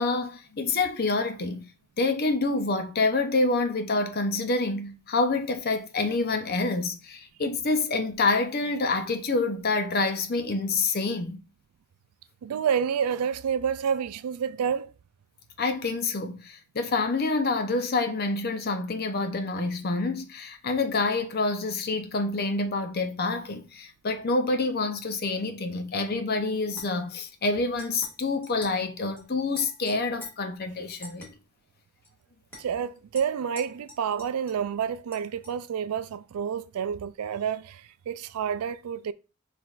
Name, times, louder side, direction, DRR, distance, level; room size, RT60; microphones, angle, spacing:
voice 1, 0.0-1.7 2.0-11.4 15.6-31.3, left 3 dB, 45° left, 0.7 m, -27 dB
voice 2, 12.4-14.9 32.6-39.1, right 7 dB, 90° right, 0.4 m, -29 dB
sound 1, 26.7-27.2 27.8-28.2 28.4-28.8 29.1-29.3 29.5-30.3 31.0-31.3 32.0-32.1 32.5-32.6 33.1-34.7 35.1-35.5, left 1 dB, 10° left, 1.5 m, -46 dB
6.0 x 3.4 x 2.4 m
head